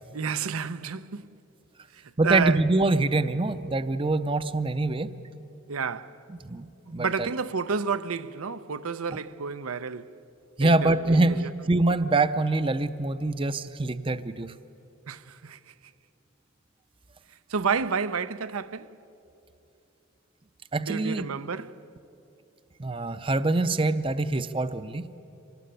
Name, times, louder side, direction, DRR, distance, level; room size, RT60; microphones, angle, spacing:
voice 1, 0.1-1.2 1.9-2.6 5.7-6.2 6.9-10.1 10.6-11.5 15.1-15.7 17.5-18.9 20.8-21.8, right 5 dB, 85° right, 0.7 m, -30 dB
voice 2, 2.2-5.1 6.4-7.3 10.6-14.5 20.7-21.3 22.8-25.1, right 2 dB, 25° right, 0.5 m, -25 dB
25.5 x 19.0 x 9.1 m
head